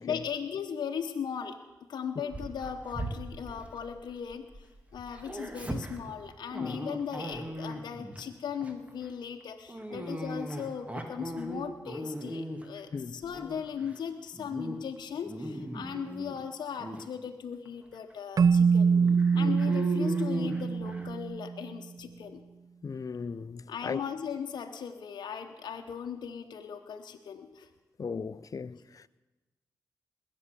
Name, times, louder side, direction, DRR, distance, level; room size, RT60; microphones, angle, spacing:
voice 1, 0.0-1.6 1.9-18.9 19.3-22.4 23.7-27.7, left 7 dB, 80° left, 0.9 m, -38 dB
Dog, 2.3-4.6 4.9-8.2 8.6-8.9 9.7-12.8 13.2-14.0 14.3-14.8 15.1-16.4 16.8-17.0 17.7-17.8 18.1-18.2 18.8-21.1, equal, 20° right, 2.5 m, -38 dB
voice 2, 12.9-13.2 22.8-24.0 28.0-29.1, left 5 dB, 50° left, 0.6 m, -37 dB
Keyboard (musical), 18.4-21.6, right 5 dB, 55° right, 0.4 m, -24 dB
20.0 x 8.6 x 6.9 m
cardioid pair, 45°, 7 cm